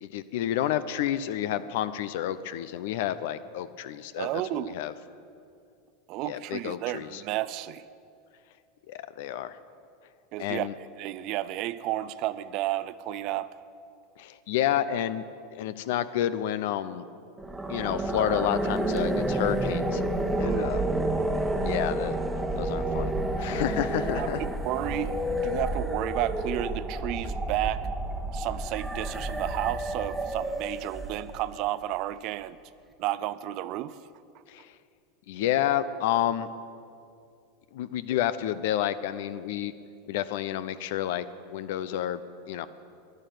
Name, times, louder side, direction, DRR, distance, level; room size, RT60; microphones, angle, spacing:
voice 1, 0.0-4.9 6.2-7.2 8.9-9.6 10.4-10.7 14.2-15.3 15.5-17.0 17.7-20.0 20.4-20.8 21.6-22.1 22.6-23.1 23.4-24.4 34.5-34.7 35.3-36.5 37.7-39.7 40.1-41.2 41.5-42.2 42.5-42.7, left 11 dB, 70° left, 14 dB, 0.7 m, -30 dB
voice 2, 4.2-4.7 6.1-7.8 10.3-10.7 11.0-13.5 20.4-20.6 24.1-27.8 28.3-32.6 33.0-34.0, right 14 dB, 55° right, 15 dB, 0.6 m, -32 dB
sound 1, 17.4-31.5, right 1 dB, 10° right, 1.2 m, -30 dB
11.5 x 10.5 x 9.3 m, 2.4 s
hypercardioid pair, 95°, 0 cm